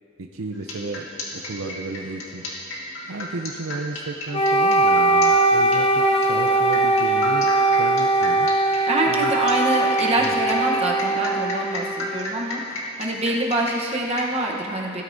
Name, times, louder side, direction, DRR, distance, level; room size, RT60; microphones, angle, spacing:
voice 1, 0.2-2.4 3.1-7.5 7.7-8.5 9.1-9.3 10.2-10.4, right 3 dB, 75° right, 3 dB, 0.6 m, -33 dB
sound 1, 0.5-14.4, left 2 dB, 75° left, 1.8 m, -33 dB
Wind instrument woodwind instrument, 4.3-12.4, right 2 dB, 25° left, 0.4 m, -20 dB
Wind instrument woodwind instrument 2, 4.9-10.9, right 1 dB, 55° right, 2.0 m, -35 dB
voice 2, 8.9-15.0, right 2 dB, 30° right, -1 dB, 1.0 m, -25 dB
17.0 x 12.5 x 2.7 m, 3.0 s
head